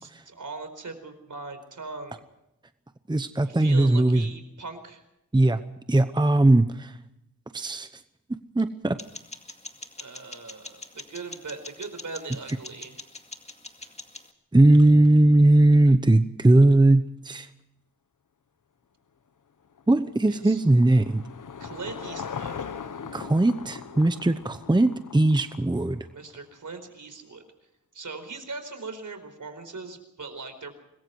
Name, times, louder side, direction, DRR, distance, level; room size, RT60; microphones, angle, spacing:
voice 1, 0.0-2.2 3.4-5.0 10.0-13.0 20.3-20.6 21.6-22.7 26.1-27.4 27.9-30.8, right 3 dB, 60° right, 8 dB, 4.6 m, -40 dB
voice 2, 3.1-4.3 5.3-5.6 5.9-7.0 7.5-7.9 8.5-9.0 14.5-17.5 19.9-21.2 23.1-26.1, right 2 dB, 15° right, 10 dB, 0.9 m, -19 dB
sound 1, 9.0-14.3, left 2 dB, 20° left, 2.3 m, -44 dB
Car passing by / Engine, 19.7-26.2, left 6 dB, 65° left, 1.1 m, -40 dB
26.0 x 21.5 x 4.7 m, 0.87 s
wide cardioid pair, 95°, 34 cm